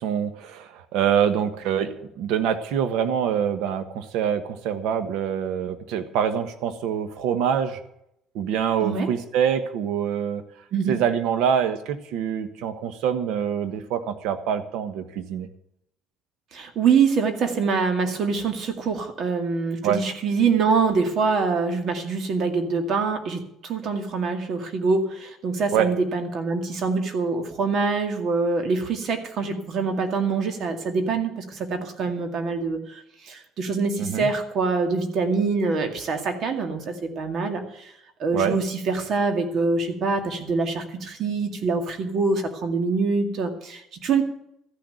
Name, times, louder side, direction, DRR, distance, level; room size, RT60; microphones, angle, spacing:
voice 1, 0.0-7.8 8.3-10.4 10.9-15.5 19.8-20.0 25.7-25.9 34.0-34.3 38.3-38.6, right 8 dB, 85° right, 10 dB, 1.3 m, -25 dB
voice 2, 16.5-37.9 38.2-44.2, right 4 dB, 55° right, 6 dB, 2.1 m, -25 dB
14.0 x 6.6 x 9.0 m, 0.78 s
cardioid pair, 125°, 0 cm